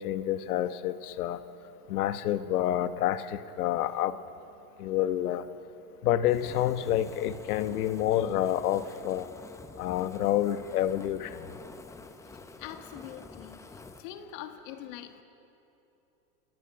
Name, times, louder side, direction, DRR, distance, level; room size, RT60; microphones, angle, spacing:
voice 1, 0.0-1.4 1.9-4.2 4.8-5.4 6.0-9.3 9.8-11.5, left 12 dB, 75° left, 11 dB, 1.2 m, -28 dB
Fire, 6.3-14.1, left 3 dB, 5° left, 0.7 m, -47 dB
voice 2, 12.6-15.2, left 10 dB, 55° left, 6 dB, 1.6 m, -44 dB
27.0 x 18.0 x 6.0 m, 3.0 s
supercardioid pair, 135°, 45 cm